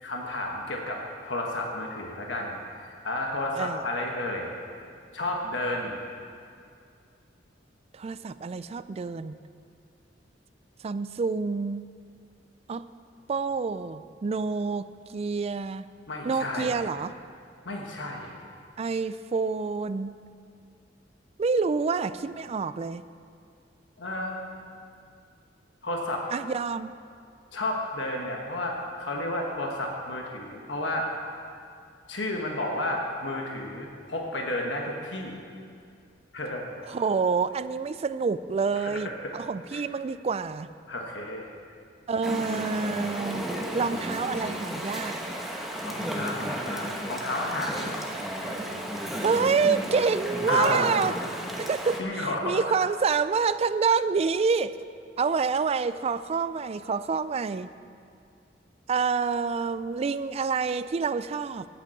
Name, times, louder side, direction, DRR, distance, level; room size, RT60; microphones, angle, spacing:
voice 1, 0.0-4.5 5.1-6.0 16.1-16.8 17.6-18.3 24.0-24.4 25.8-26.3 27.5-31.1 32.1-35.4 36.3-36.7 38.8-39.1 39.7-39.8 40.9-41.5 45.9-47.9 50.5-50.8 52.0-52.9, left 1 dB, 85° left, 0 dB, 1.3 m, -32 dB
voice 2, 3.6-3.9 7.9-9.4 10.8-11.8 12.7-12.8 13.3-15.8 16.2-17.1 18.8-20.1 21.4-23.0 26.3-26.9 36.9-40.7 42.1-43.5 43.7-45.2 49.2-51.2 51.6-54.8 55.2-57.7 58.9-61.7, right 5 dB, 35° right, 14 dB, 0.3 m, -27 dB
Chatter / Stream, 42.2-52.0, equal, ahead, 1.1 m, -33 dB
9.1 x 9.0 x 7.6 m, 2.4 s
head